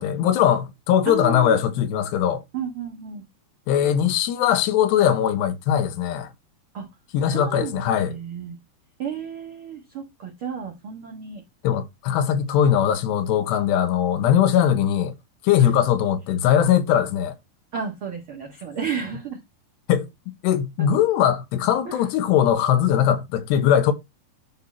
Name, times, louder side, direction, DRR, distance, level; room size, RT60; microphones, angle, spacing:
voice 1, 0.0-2.4 3.7-6.3 7.1-8.2 11.6-15.1 15.4-17.4 19.9-20.1 20.4-23.9, left 9 dB, 90° left, 3.3 m, -20 dB
voice 2, 1.0-1.6 2.5-3.2 6.7-6.9 7.3-8.6 9.0-11.4 15.6-15.7 17.7-19.4 20.8-20.9 21.8-22.0, right 7 dB, 55° right, 1.5 m, -32 dB
11.0 x 3.9 x 4.3 m
omnidirectional pair, 4.7 m